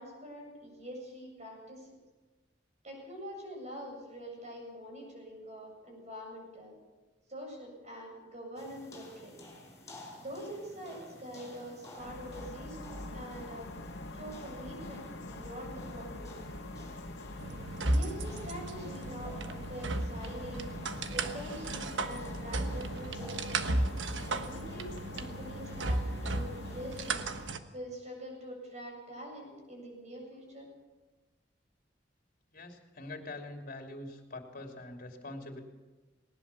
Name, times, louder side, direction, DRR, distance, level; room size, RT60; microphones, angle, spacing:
voice 1, 0.0-1.9 2.8-6.8 7.3-9.3 10.2-13.7 14.1-16.3 17.8-20.7 21.1-23.4 24.3-27.3 27.7-30.7, equal, 40° right, 1 dB, 7.5 m, -45 dB
sound 1, 8.6-27.2, left 1 dB, 20° left, 5.4 m, -53 dB
sound 2, 12.0-27.6, left 1 dB, 85° left, 1.9 m, -44 dB
sound 3, 17.4-27.6, right 2 dB, 80° right, 1.3 m, -35 dB
voice 2, 32.5-35.6, left 2 dB, 50° left, 3 dB, 3.0 m, -44 dB
19.5 x 19.0 x 7.1 m, 1.2 s
head